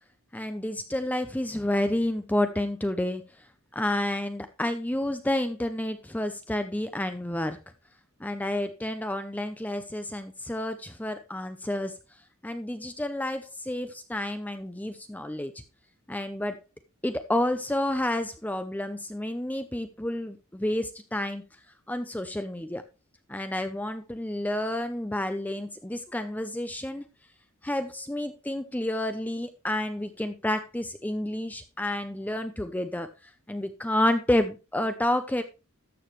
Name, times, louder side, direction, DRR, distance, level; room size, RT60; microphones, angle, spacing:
voice 1, 0.3-3.2 3.7-7.6 8.2-11.9 12.4-15.5 16.1-16.6 17.0-21.4 21.9-22.8 23.3-27.0 27.6-33.1 33.5-35.4, left 1 dB, 5° left, 8 dB, 0.6 m, -30 dB
13.0 x 7.1 x 3.2 m, 0.28 s
head